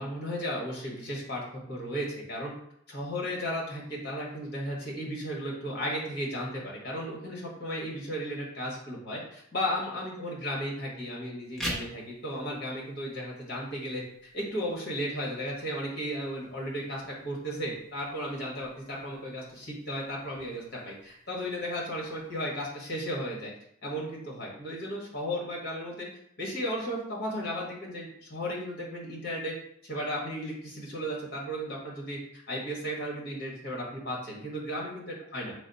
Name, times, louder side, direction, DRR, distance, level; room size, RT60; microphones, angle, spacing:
voice 1, 0.0-1.4 1.7-2.5 2.9-23.5 23.8-26.1 26.4-29.5 29.8-35.5, equal, 50° left, -3 dB, 1.2 m, -35 dB
sound 1, 11.4-22.4, equal, ahead, 0.7 m, -46 dB
4.0 x 2.0 x 3.9 m, 0.70 s
head